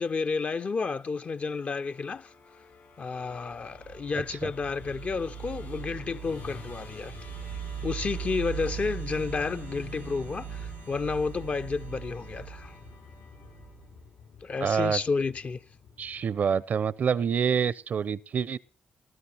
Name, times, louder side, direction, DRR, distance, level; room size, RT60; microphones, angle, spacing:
voice 1, 0.0-2.3 3.0-7.1 7.8-12.8 14.4-15.6, left 4 dB, 45° left, 0.6 m, -31 dB
Musical instrument, 1.3-16.6, left 5 dB, 70° left, 7.1 m, -48 dB
sound 1, 3.5-14.0, right 9 dB, 90° right, 0.9 m, -40 dB
voice 2, 14.6-15.0 16.0-18.6, right 7 dB, 60° right, 0.5 m, -26 dB
20.0 x 12.5 x 2.9 m
supercardioid pair, 55°, 3 cm